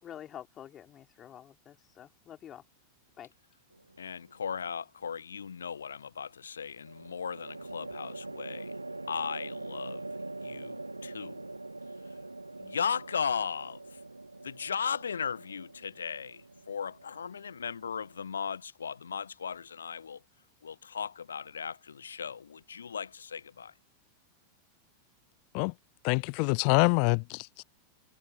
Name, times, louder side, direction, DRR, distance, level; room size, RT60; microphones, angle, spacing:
voice 1, 0.0-2.6 3.2-3.3, left 10 dB, 30° left, 4.1 m, -48 dB
sound 1, 3.7-4.3 6.8-18.2, right 2 dB, 85° right, 1.3 m, -44 dB
voice 2, 4.0-8.8 9.1-10.0 10.4-11.5 12.0-12.2 12.6-14.0 14.4-20.2 20.6-23.7, left 6 dB, 70° left, 1.3 m, -37 dB
voice 3, 26.0-27.6, left 40 dB or more, 45° left, 0.3 m, -26 dB
figure-of-eight pair, 90°, 0 cm